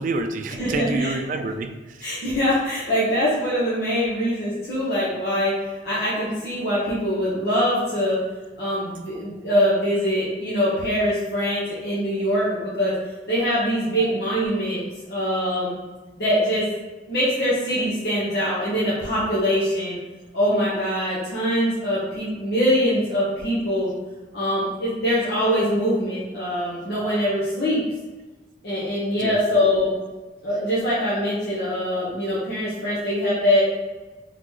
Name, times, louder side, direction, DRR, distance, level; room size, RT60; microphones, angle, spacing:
voice 1, 0.0-2.0 14.0-14.1 27.0-27.1 29.2-29.4, right 3 dB, 45° right, 6 dB, 0.3 m, -28 dB
voice 2, 0.6-1.2 2.0-8.2 8.6-12.9 13.3-14.8 15.1-15.7 16.2-16.7 17.1-20.0 20.3-23.9 24.3-27.8 28.6-29.9 30.4-33.6, equal, 65° left, -9 dB, 1.1 m, -23 dB
3.9 x 3.1 x 3.6 m, 1.2 s
head